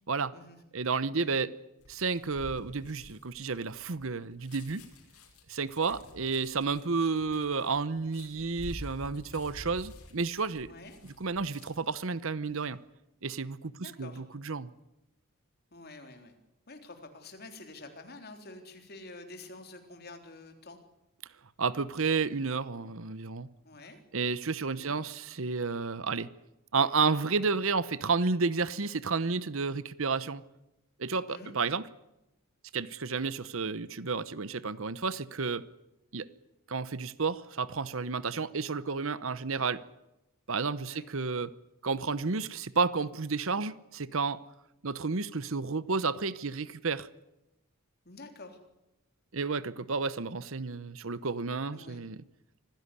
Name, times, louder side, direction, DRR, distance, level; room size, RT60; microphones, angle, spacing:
voice 1, 0.7-1.5 1.9-4.8 5.5-10.7 11.0-12.8 13.2-14.7 21.6-23.5 24.1-26.3 26.7-30.4 31.0-31.8 32.7-35.6 36.1-36.3 36.7-39.8 40.5-41.5 41.8-44.4 44.8-47.1 49.3-52.2, right 4 dB, 60° right, 0.9 m, -31 dB
sound 1, 1.8-12.0 12.4-12.7, left 1 dB, 85° left, 5.9 m, -49 dB
voice 2, 10.7-11.0 13.8-14.2 15.7-16.3 16.7-20.8 23.6-24.0 24.8-25.0 31.3-31.6 40.9-41.1 48.1-48.6 51.7-52.0, left 2 dB, 45° left, 3.7 m, -48 dB
25.0 x 16.5 x 9.8 m
head